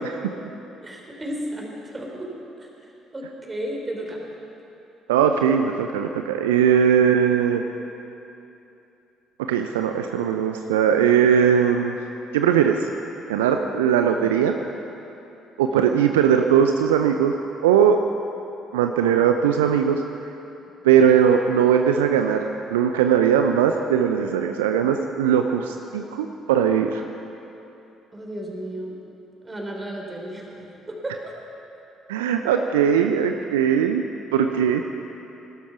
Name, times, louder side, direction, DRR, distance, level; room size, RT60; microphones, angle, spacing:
voice 1, 0.8-2.3 2.6-4.2 14.2-14.3 15.7-15.9 28.1-29.0 29.4-31.3, right 1 dB, 20° right, 0 dB, 3.8 m, -34 dB
voice 2, 5.1-7.6 9.5-11.9 12.3-12.9 13.3-14.5 15.6-17.4 17.6-18.0 18.7-20.0 20.8-27.0 32.1-34.1 34.3-34.8, right 8 dB, 75° right, 6 dB, 0.6 m, -19 dB
18.5 x 12.5 x 5.8 m, 2.9 s
figure-of-eight pair, 50°, 0 cm